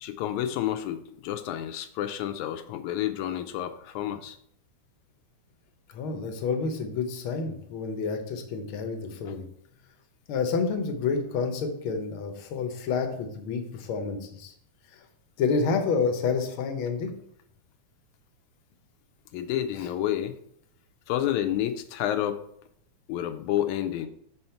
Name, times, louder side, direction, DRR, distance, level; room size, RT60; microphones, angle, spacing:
voice 1, 0.0-4.4 19.3-20.4 21.1-22.4 23.1-24.1, left 11 dB, 80° left, 9 dB, 1.9 m, -29 dB
voice 2, 5.9-9.4 10.3-14.5 15.4-17.1 19.7-19.8, left 5 dB, 65° left, 5 dB, 1.4 m, -29 dB
6.3 x 5.5 x 4.4 m, 0.69 s
omnidirectional pair, 3.5 m